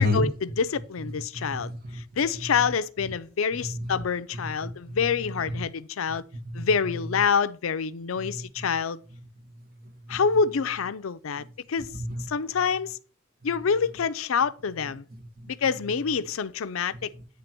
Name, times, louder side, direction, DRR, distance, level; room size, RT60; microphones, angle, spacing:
voice 1, 0.0-6.2 6.5-9.0 10.1-11.9 12.3-13.0 13.4-15.0 15.5-17.1, left 6 dB, 85° left, 0.5 m, -27 dB
voice 2, 1.0-2.0 2.3-2.7 3.6-4.0 4.3-5.6 6.3-7.2 8.2-8.7 9.1-9.2 9.6-10.2 11.3-11.5 11.9-12.3 15.1-15.5 16.9-17.2, left 2 dB, 50° right, 1.3 m, -33 dB
9.4 x 3.4 x 5.9 m
head